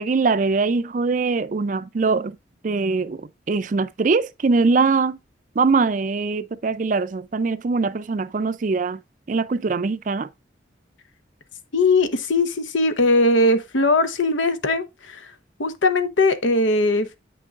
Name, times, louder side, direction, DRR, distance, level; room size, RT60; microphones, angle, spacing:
voice 1, 0.0-2.4 2.6-5.2 5.6-9.0 9.3-10.3, right 4 dB, 45° right, 0.4 m, -22 dB
voice 2, 11.7-15.3 15.6-17.2, left 2 dB, 90° left, 0.9 m, -20 dB
8.4 x 6.0 x 2.4 m
head